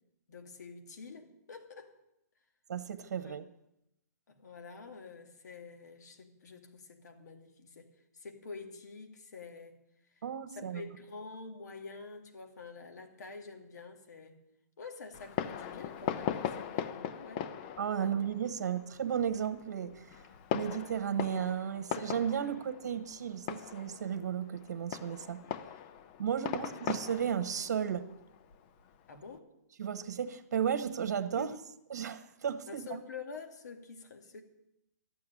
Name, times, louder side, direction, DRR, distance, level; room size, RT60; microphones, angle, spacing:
voice 1, 0.3-2.0 3.2-3.4 4.3-10.2 10.5-14.4 14.8-17.5 18.0-18.2 18.6-18.7 26.5-26.7 29.1-29.5 31.3-31.6 32.7-34.4, left 4 dB, 75° left, 2.4 m, -48 dB
voice 2, 2.7-3.5 10.2-10.8 17.8-20.2 20.5-25.4 26.2-28.1 29.8-31.5 31.9-33.0, right 8 dB, 70° right, 1.2 m, -34 dB
Fireworks, 15.1-29.3, left 9 dB, 35° left, 0.7 m, -40 dB
12.5 x 7.8 x 10.0 m
hypercardioid pair, 155°, 9 cm